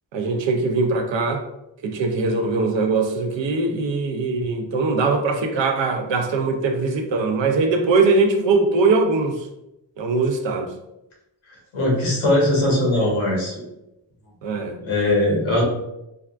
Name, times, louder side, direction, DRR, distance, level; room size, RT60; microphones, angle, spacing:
voice 1, 0.1-1.5 1.8-9.5 10.0-10.7 14.4-14.8, right 3 dB, 70° right, 5 dB, 0.6 m, -21 dB
voice 2, 11.7-13.6 14.8-15.6, left 1 dB, 90° left, -3 dB, 1.2 m, -20 dB
3.5 x 2.3 x 2.4 m, 0.90 s
cardioid pair, 50°, 46 cm